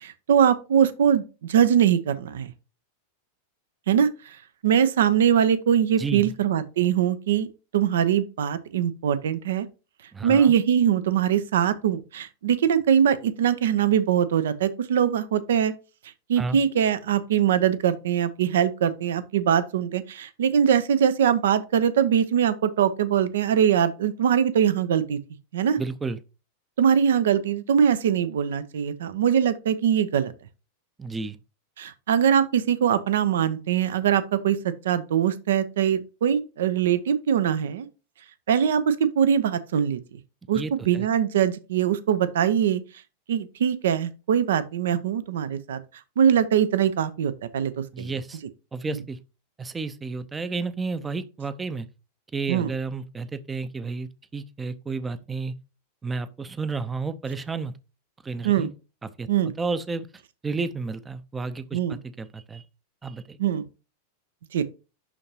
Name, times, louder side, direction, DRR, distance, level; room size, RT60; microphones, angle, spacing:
voice 1, 0.0-1.2 1.5-2.5 3.9-4.1 4.6-7.5 7.7-9.7 10.2-15.7 16.3-25.2 25.5-25.8 26.8-30.3 31.8-37.9 38.5-40.0 40.5-42.8 43.3-45.8 46.2-48.1 48.9-49.0 52.5-52.7 58.4-58.7 59.3-59.5 61.7-62.0 63.4-63.6 64.5-64.6, right 8 dB, 60° right, 0.6 m, -22 dB
voice 2, 6.0-6.3 10.1-10.5 16.4-16.6 25.8-26.2 31.0-31.4 40.5-41.1 47.9-48.4 48.7-49.2 49.6-51.9 52.3-55.5 56.0-57.7 58.2-58.7 59.0-59.3 59.6-60.1 60.4-62.6 63.0-63.4, right 4 dB, 15° right, 0.6 m, -31 dB
11.0 x 3.8 x 2.8 m
figure-of-eight pair, 90°, 0 cm